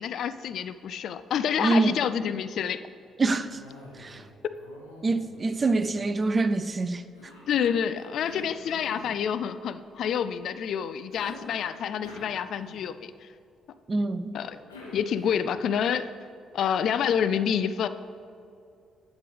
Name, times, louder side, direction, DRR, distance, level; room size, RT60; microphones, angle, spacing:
voice 1, 0.0-2.8 7.5-13.3 14.3-14.6 14.9-16.1 16.5-17.9, left 8 dB, 55° left, 13 dB, 0.3 m, -28 dB
voice 2, 1.6-2.0 3.2-3.6 4.0-4.2 5.0-7.0 13.9-14.3, right 3 dB, 30° right, 11 dB, 0.5 m, -25 dB
Cough, 3.4-4.3 4.5-6.6 7.1-9.1 11.1-13.1 14.3-15.6, left 2 dB, 80° left, 1.4 m, -48 dB
11.5 x 7.9 x 3.4 m, 2.5 s
figure-of-eight pair, 45°, 0 cm